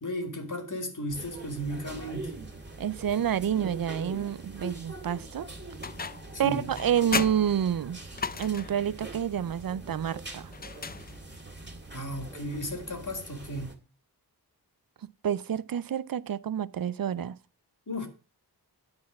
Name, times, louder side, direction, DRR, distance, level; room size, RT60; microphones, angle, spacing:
voice 1, 0.0-2.3 6.4-6.8 11.9-13.7 17.9-18.1, equal, 50° left, 2.2 m, -35 dB
sound 1, 1.1-13.7, right 2 dB, 25° right, 2.1 m, -43 dB
voice 2, 2.8-5.5 6.4-8.0 8.4-10.5 15.2-17.4, right 9 dB, 60° right, 0.5 m, -28 dB
sound 2, 5.8-6.4 6.8-8.9 10.5-11.5, left 5 dB, 25° left, 0.4 m, -35 dB
9.4 x 4.8 x 7.2 m
wide cardioid pair, 80°, 39 cm